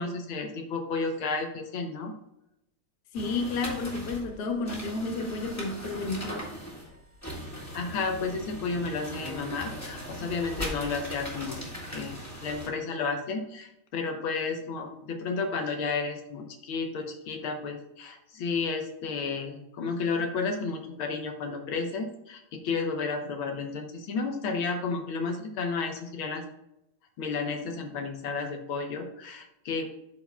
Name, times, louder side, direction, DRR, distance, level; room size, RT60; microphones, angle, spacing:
voice 1, 0.0-2.1 7.7-26.4 27.2-29.9, left 4 dB, 75° left, 1.8 m, -32 dB
voice 2, 3.1-6.5, left 3 dB, 55° left, 1.5 m, -31 dB
sound 1, 3.1-12.7, equal, 10° left, 1.9 m, -39 dB
12.5 x 4.5 x 2.3 m
omnidirectional pair, 2.3 m